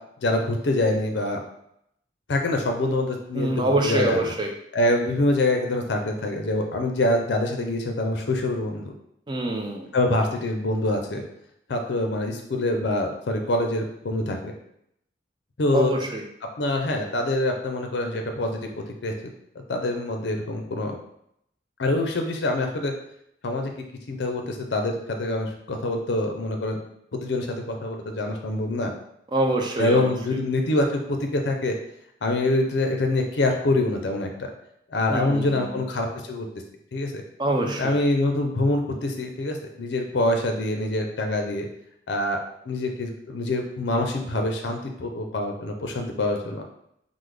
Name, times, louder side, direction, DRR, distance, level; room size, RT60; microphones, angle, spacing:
voice 1, 0.2-1.4 2.3-4.3 4.7-8.9 9.9-11.2 11.7-14.5 15.6-15.9 16.6-19.1 19.7-21.0 21.8-22.9 23.4-23.7 24.1-26.8 27.1-28.9 29.8-31.7 32.2-34.5 34.9-36.5 36.9-37.2 37.8-41.7 42.1-42.4 42.7-46.6, left 2 dB, 70° left, 3 dB, 0.5 m, -25 dB
voice 2, 3.3-4.5 9.3-9.9 15.7-16.2 29.3-30.1 35.1-35.7 37.4-37.9, right 1 dB, 25° right, 2 dB, 0.4 m, -25 dB
3.5 x 2.0 x 3.2 m, 0.75 s
head